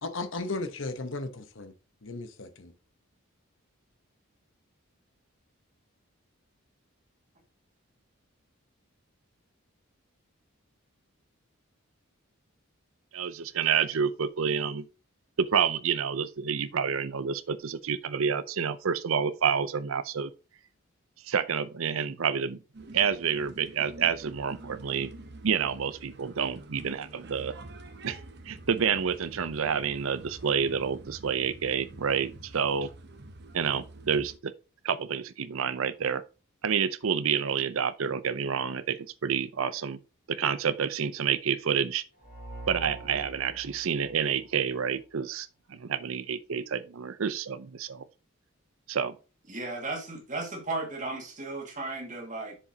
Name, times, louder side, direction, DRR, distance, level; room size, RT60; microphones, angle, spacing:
voice 1, 0.0-1.7 2.0-2.7, left 3 dB, 60° left, 0.9 m, -35 dB
voice 2, 13.1-14.9 15.4-20.3 21.2-22.6 22.9-25.1 25.4-27.5 28.0-28.2 28.5-32.9 33.5-34.5 34.8-36.2 36.6-40.0 40.3-42.0 42.7-48.0 48.9-49.2, right 7 dB, 75° right, 0.6 m, -29 dB
sound 1, 22.7-34.4, right 2 dB, 50° right, 0.9 m, -47 dB
sound 2, 42.2-45.0, right 1 dB, 45° left, 3.9 m, -44 dB
voice 3, 49.5-52.6, right 2 dB, 35° right, 2.1 m, -35 dB
7.2 x 6.9 x 2.8 m
head